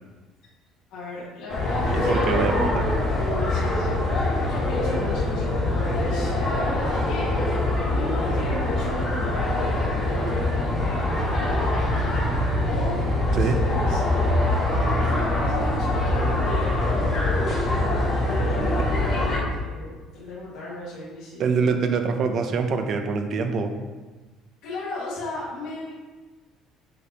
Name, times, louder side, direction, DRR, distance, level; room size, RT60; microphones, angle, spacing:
voice 1, 0.9-7.3 7.8-9.7 10.0-11.7 12.7-14.4 15.0-21.6 24.6-25.9, left 1 dB, 75° left, -9 dB, 1.9 m, -35 dB
sound 1, 1.5-19.4, left 1 dB, 35° left, 1.9 m, -24 dB
voice 2, 2.1-2.8 13.3-13.6 21.4-23.7, right 5 dB, 45° right, 6 dB, 0.7 m, -24 dB
9.3 x 5.1 x 3.0 m, 1.3 s
cardioid pair, 150°, 0 cm